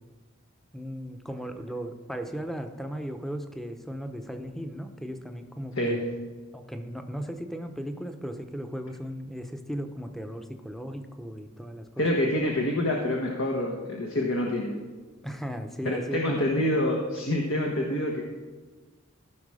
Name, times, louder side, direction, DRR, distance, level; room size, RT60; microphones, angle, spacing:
voice 1, 0.7-6.0 6.5-12.1 15.2-16.7, equal, ahead, 6 dB, 0.7 m, -36 dB
voice 2, 5.8-6.3 12.0-14.8 15.8-18.2, left 1 dB, 75° left, 0 dB, 1.3 m, -27 dB
15.0 x 5.9 x 4.9 m, 1.4 s
head